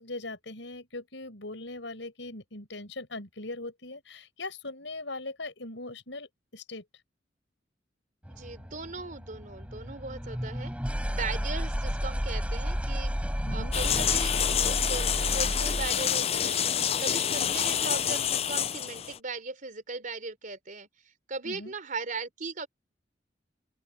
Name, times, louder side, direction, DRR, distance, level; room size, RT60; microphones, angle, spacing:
voice 1, 0.0-6.8 13.4-13.7 21.4-21.7, left 2 dB, 90° left, 5.9 m, -40 dB
sound 1, 8.2-16.1, equal, 5° right, 7.0 m, -32 dB
voice 2, 8.3-10.7 11.1-13.1 13.5-14.3 14.6-16.6 17.0-20.9 21.3-22.7, right 4 dB, 50° right, 3.9 m, -38 dB
sound 2, 13.7-19.2, left 9 dB, 35° left, 0.5 m, -27 dB
open air
head